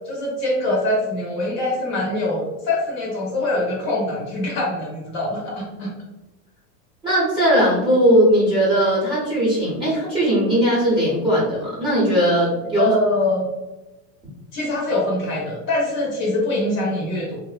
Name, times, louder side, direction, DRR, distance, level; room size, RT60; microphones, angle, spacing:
voice 1, 0.1-5.9 12.8-13.5 14.5-17.4, left 2 dB, 35° left, -3 dB, 0.6 m, -23 dB
voice 2, 7.0-12.9, right 1 dB, 10° right, -9 dB, 0.6 m, -18 dB
2.6 x 2.0 x 2.3 m, 1.1 s
supercardioid pair, 145°, 49 cm